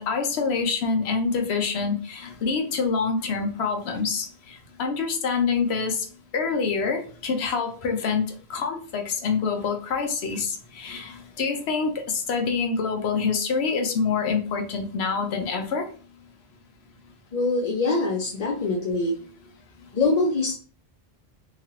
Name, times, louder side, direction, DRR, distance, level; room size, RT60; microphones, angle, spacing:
voice 1, 0.0-4.3 4.8-6.0 6.3-8.2 8.5-11.9 12.3-15.9, left 5 dB, 85° left, 4 dB, 0.9 m, -26 dB
voice 2, 17.3-19.1 19.9-20.5, left 3 dB, 50° left, -1 dB, 0.5 m, -23 dB
3.0 x 2.4 x 3.0 m, 0.41 s
omnidirectional pair, 1.1 m